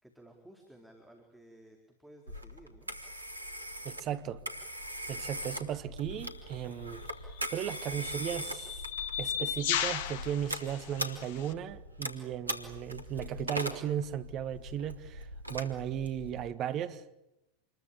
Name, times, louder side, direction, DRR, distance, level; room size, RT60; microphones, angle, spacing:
voice 1, 0.0-2.9 15.8-16.0, right 1 dB, ahead, 4.3 m, -56 dB
Telephone, 2.3-16.5, equal, 85° right, 2.7 m, -41 dB
voice 2, 3.8-4.4 5.1-7.0 7.5-8.8 9.2-17.0, right 10 dB, 40° right, 1.5 m, -36 dB
sound 1, 6.1-6.3 7.3-11.5, left 10 dB, 55° left, 1.8 m, -36 dB
28.0 x 22.0 x 8.6 m
figure-of-eight pair, 85°, 0 cm